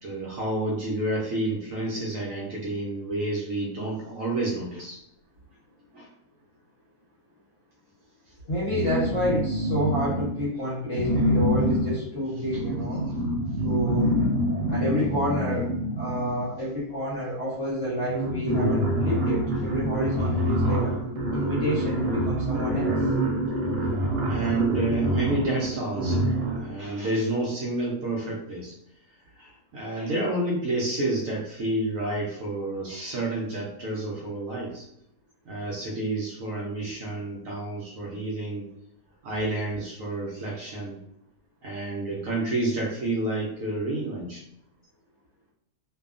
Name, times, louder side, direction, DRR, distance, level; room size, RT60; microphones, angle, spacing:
voice 1, 0.0-5.0 5.9-6.1 24.3-26.3 26.6-28.7 29.4-34.8 35.5-38.7 39.2-41.0 41.6-44.4, right 2 dB, 65° right, -3 dB, 0.9 m, -29 dB
voice 2, 8.4-13.0 13.6-14.1 14.7-15.7 16.0-21.0 21.3-23.1, equal, 50° left, -6 dB, 0.8 m, -29 dB
sound 1, 8.7-10.5 10.9-16.6 17.5-17.6 17.9-26.8, equal, 85° right, 1.2 m, -26 dB
2.6 x 2.3 x 2.4 m, 0.76 s
omnidirectional pair, 1.7 m